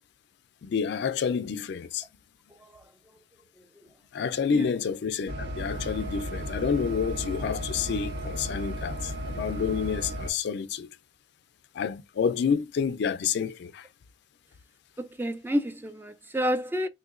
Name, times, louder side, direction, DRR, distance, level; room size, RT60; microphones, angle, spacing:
voice 1, 0.6-2.0 4.1-10.9 11.7-13.9, left 6 dB, 65° left, 0.3 m, -29 dB
voice 2, 2.5-2.9 3.6-3.7 4.5-4.7 15.0-16.9, equal, 10° right, 0.3 m, -30 dB
sound 1, 5.3-10.3, equal, 65° right, 0.9 m, -34 dB
3.7 x 2.7 x 2.4 m
head